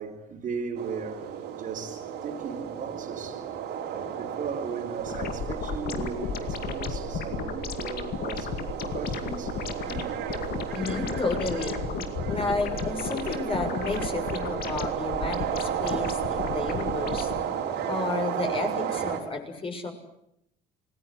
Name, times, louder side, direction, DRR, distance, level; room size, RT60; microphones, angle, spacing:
voice 1, 0.0-3.4 3.8-9.6 9.9-10.3, right 5 dB, 55° right, 4.1 m, -37 dB
sound 1, 0.8-19.2, right 8 dB, 85° right, 5.1 m, -33 dB
sound 2, 5.1-17.4, left 7 dB, 65° left, 2.3 m, -34 dB
voice 2, 10.7-11.8 12.2-17.3 17.8-19.9, left 3 dB, 30° left, 6.9 m, -31 dB
28.0 x 19.5 x 10.0 m
cardioid pair, 110°, 17 cm